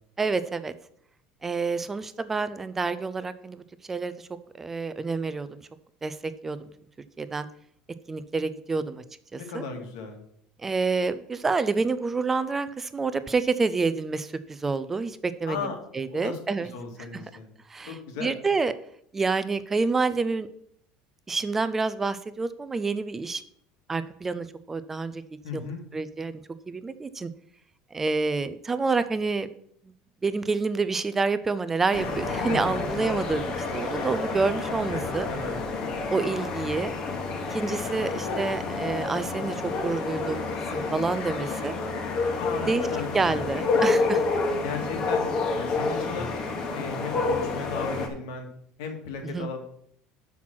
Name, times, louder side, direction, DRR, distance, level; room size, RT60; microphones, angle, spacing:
voice 1, 0.2-0.7 1.4-3.6 3.9-4.3 4.6-5.6 6.0-6.6 7.2-7.5 8.1-9.0 9.3-9.6 10.6-15.6 15.9-16.7 17.1-17.2 17.7-18.7 19.1-20.5 21.3-23.4 23.9-25.2 25.5-26.3 26.7-27.3 27.9-29.5 30.2-35.3 36.1-36.9 37.5-41.7 42.7-42.9 43.1-44.2 49.3-49.5, right 4 dB, 10° right, 13 dB, 0.3 m, -28 dB
voice 2, 9.3-10.2 15.5-15.8 16.1-16.4 16.7-17.5 17.9-18.3 25.4-25.8 32.4-32.8 34.9-35.7 42.4-43.5 44.6-45.3 45.6-46.3 46.7-48.5 48.8-49.7, left 5 dB, 90° left, 3 dB, 2.0 m, -35 dB
sound 1, 31.9-48.1, left 3 dB, 30° left, 1.1 m, -29 dB
5.9 x 5.8 x 6.1 m, 0.67 s
cardioid pair, 175°, 2 cm